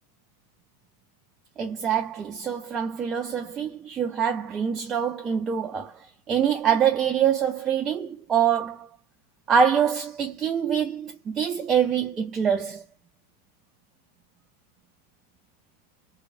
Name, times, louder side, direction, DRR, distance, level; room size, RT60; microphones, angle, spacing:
voice 1, 1.6-5.9 6.3-8.9 9.5-12.8, right 8 dB, 25° right, 0.4 m, -25 dB
3.0 x 2.2 x 2.5 m
figure-of-eight pair, 90°, 0 cm